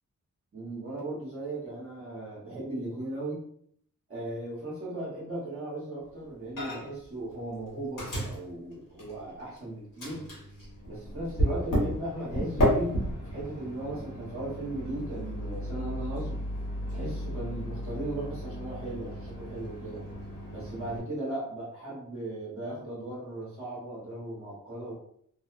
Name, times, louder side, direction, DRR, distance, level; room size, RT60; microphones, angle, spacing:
voice 1, 0.5-3.4 4.1-10.3 10.9-13.0 13.2-16.4 16.9-20.0 20.5-25.0, right 1 dB, 45° right, -6 dB, 1.0 m, -37 dB
Microwave oven, 6.6-7.1 7.3-9.6 10.0-21.0, equal, 90° left, 1.2 m, -33 dB
2.7 x 2.0 x 2.5 m, 0.65 s
wide cardioid pair, 160°, 32 cm